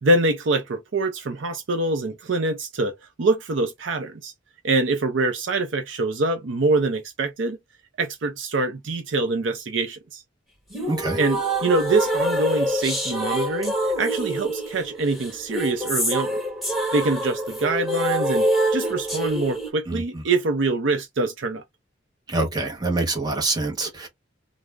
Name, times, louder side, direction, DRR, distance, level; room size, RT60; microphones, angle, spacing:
voice 1, 0.0-2.9 3.2-4.3 4.6-7.6 8.0-10.2 11.2-16.4 16.9-21.6, right 2 dB, 60° right, 0.5 m, -24 dB
sound 1, 10.7-19.7, right 1 dB, ahead, 1.2 m, -26 dB
voice 2, 10.9-11.2 19.9-20.0 22.3-24.1, right 2 dB, 20° right, 0.7 m, -25 dB
2.4 x 2.0 x 3.2 m
head